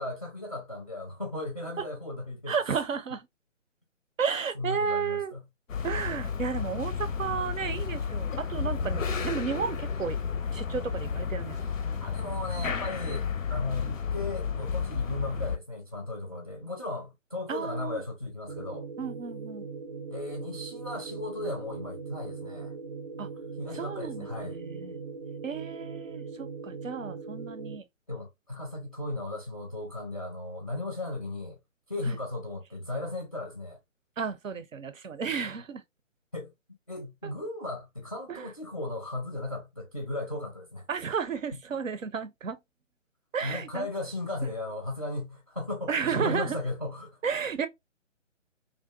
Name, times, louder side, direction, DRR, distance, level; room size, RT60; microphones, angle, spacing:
voice 1, 0.0-2.5 4.5-5.4 12.0-18.9 20.1-22.7 23.6-24.6 28.1-31.6 31.9-33.8 36.3-36.5 36.9-40.9 43.4-47.2, left 2 dB, 30° left, 0.4 m, -36 dB
voice 2, 2.5-3.3 4.2-5.3 5.8-10.2 10.5-11.6 17.5-18.0 19.0-19.7 23.2-23.3 23.7-25.0 25.4-27.8 32.1-32.2 34.2-35.8 37.2-37.3 38.3-38.4 40.9-42.6 43.3-43.9 45.9-46.6 47.2-47.7, right 6 dB, 85° right, 0.6 m, -32 dB
sound 1, 5.7-15.6, left 6 dB, 85° left, 0.5 m, -32 dB
sound 2, 18.5-27.8, right 4 dB, 35° right, 0.4 m, -40 dB
2.5 x 2.2 x 2.3 m
figure-of-eight pair, 140°, 38 cm